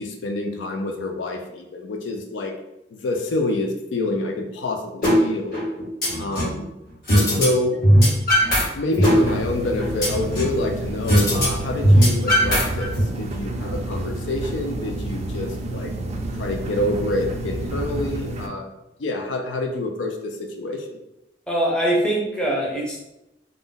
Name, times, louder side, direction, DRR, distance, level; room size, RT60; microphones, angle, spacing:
voice 1, 0.0-2.5 2.9-5.6 6.2-6.7 7.1-7.8 8.7-15.9 16.4-18.7 19.0-21.0, left 2 dB, 70° left, 3 dB, 0.4 m, -27 dB
sound 1, 5.0-5.2 5.5-6.6 7.1-7.5 7.7-8.6 8.9-10.6 11.1-11.5 11.7-13.0, equal, 50° left, 1.3 m, -17 dB
sound 2, 9.1-18.5, right 2 dB, 35° right, 0.3 m, -30 dB
voice 2, 21.5-23.0, right 1 dB, 5° left, -4 dB, 0.6 m, -22 dB
2.5 x 2.0 x 3.8 m, 0.89 s
head